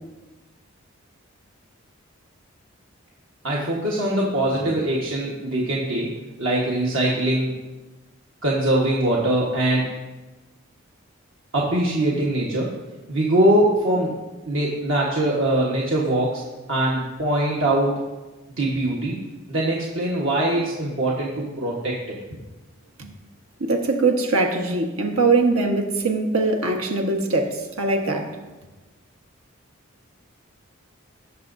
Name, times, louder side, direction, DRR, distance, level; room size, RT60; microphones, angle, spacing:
voice 1, 3.4-6.1 6.4-7.5 8.4-9.8 11.5-12.7 13.1-14.1 14.5-16.4 16.7-18.0 18.6-19.2 19.5-22.4, right 1 dB, 65° right, 1.3 m, -22 dB
voice 2, 23.6-28.3, right 3 dB, 90° right, 1.3 m, -22 dB
18.5 x 6.9 x 2.7 m
head